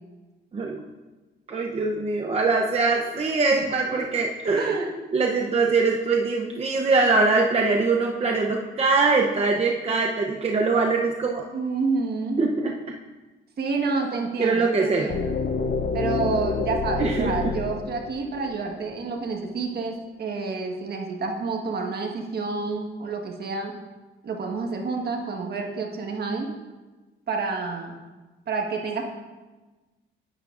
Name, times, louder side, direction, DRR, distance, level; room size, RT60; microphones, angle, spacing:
voice 1, 0.5-0.9 1.5-4.8 5.1-11.4 12.4-12.8 14.4-15.1 17.0-17.5, right 3 dB, 30° right, 1 dB, 0.7 m, -23 dB
voice 2, 4.6-4.9 11.5-12.4 13.6-15.4 15.9-23.7 24.2-26.5 27.3-27.9 28.5-29.0, right 4 dB, 55° right, 2 dB, 1.5 m, -29 dB
sound 1, 15.1-19.0, left 5 dB, 50° left, 0.7 m, -28 dB
10.5 x 9.2 x 2.5 m, 1.2 s
cardioid pair, 90°, 20 cm